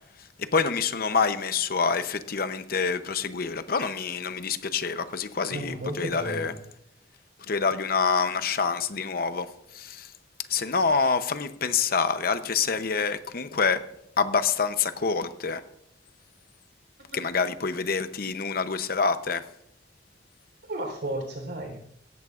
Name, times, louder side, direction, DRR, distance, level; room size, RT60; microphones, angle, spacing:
voice 1, 0.4-6.5 7.5-9.5 9.7-10.1 10.5-13.8 14.2-15.6 17.1-19.4, left 5 dB, 55° left, 0.8 m, -26 dB
voice 2, 5.5-6.6 17.1-17.2 20.7-21.8, right 1 dB, 65° right, 3.9 m, -33 dB
17.5 x 15.0 x 2.5 m
head